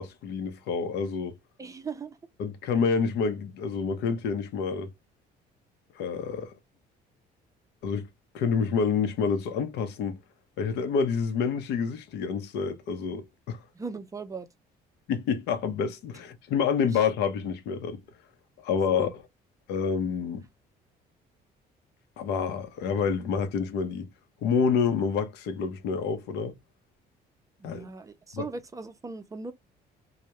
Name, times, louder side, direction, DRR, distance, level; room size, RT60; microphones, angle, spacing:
voice 1, 0.0-1.3 2.4-4.9 6.0-6.5 7.8-8.1 8.3-10.2 10.6-13.6 15.1-18.0 18.6-19.1 19.7-20.4 22.2-24.1 24.4-26.5 27.6-27.8 28.3-28.5, left 6 dB, 80° left, 0.6 m, -28 dB
voice 2, 1.6-2.2 13.7-14.5 16.9-17.0 18.9-19.1 27.6-29.5, right 4 dB, 20° right, 0.4 m, -38 dB
2.2 x 2.0 x 2.8 m
cardioid pair, 110°, 17 cm